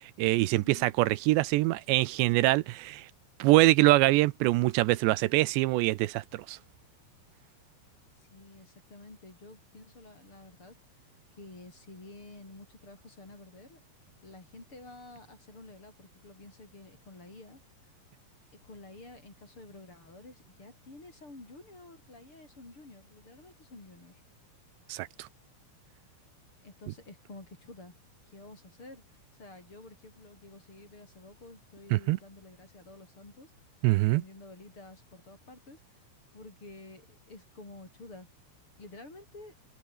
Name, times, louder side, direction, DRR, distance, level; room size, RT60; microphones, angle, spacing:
voice 1, 0.0-3.1 3.4-6.6 24.9-25.3 31.9-32.2 33.8-34.2, right 19 dB, 80° right, 2.7 m, -24 dB
voice 2, 8.2-10.8 11.3-13.8 14.2-17.6 18.6-24.2 26.6-28.0 28.3-29.0 29.4-33.5 33.8-36.0 36.3-38.3 38.8-39.6, left 2 dB, 25° left, 7.6 m, -50 dB
omnidirectional pair, 5.4 m